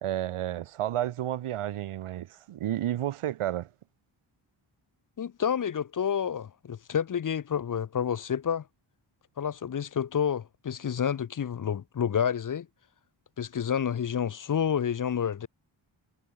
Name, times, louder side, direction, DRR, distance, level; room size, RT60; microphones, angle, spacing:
voice 1, 0.0-3.7, right 12 dB, 80° right, 0.7 m, -31 dB
voice 2, 5.2-8.6 9.4-12.7 13.4-15.5, left 8 dB, 40° left, 0.5 m, -29 dB
wide cardioid pair, 85°, 50 cm